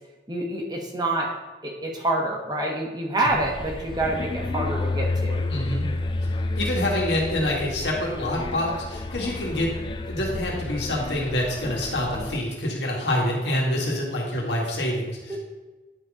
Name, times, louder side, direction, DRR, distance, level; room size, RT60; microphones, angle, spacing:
voice 1, 0.3-1.3 1.6-5.4 15.3-15.4, right 2 dB, 25° right, 0 dB, 1.1 m, -27 dB
sound 1, 3.3-12.4, left 2 dB, 25° left, 0.4 m, -30 dB
voice 2, 5.5-5.9 6.6-9.7 10.1-15.4, left 1 dB, 85° left, -2 dB, 2.0 m, -26 dB
9.9 x 4.1 x 4.9 m, 1.2 s
head